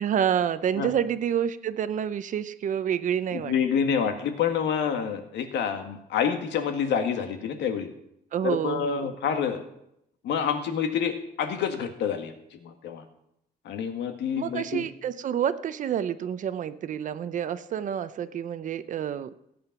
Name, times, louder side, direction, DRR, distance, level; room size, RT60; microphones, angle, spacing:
voice 1, 0.0-3.9 8.3-9.1 14.4-19.3, right 9 dB, 45° right, 12 dB, 0.6 m, -28 dB
voice 2, 3.3-7.9 8.4-9.6 10.2-13.0 13.7-14.9, left 7 dB, 80° left, 7 dB, 1.8 m, -28 dB
16.5 x 8.7 x 6.0 m, 0.78 s
cardioid pair, 175°, 18 cm